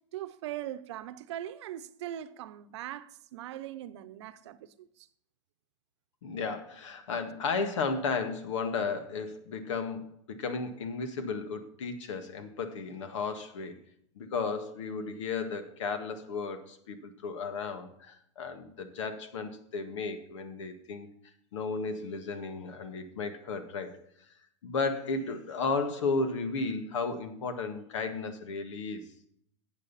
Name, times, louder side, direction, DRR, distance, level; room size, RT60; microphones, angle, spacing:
voice 1, 0.1-5.1, right 12 dB, 70° right, 0.8 m, -40 dB
voice 2, 6.2-13.8 14.2-21.1 21.5-24.0 24.6-29.0, left 4 dB, 85° left, 1.8 m, -34 dB
12.5 x 8.2 x 4.1 m
supercardioid pair, 150°, 15 cm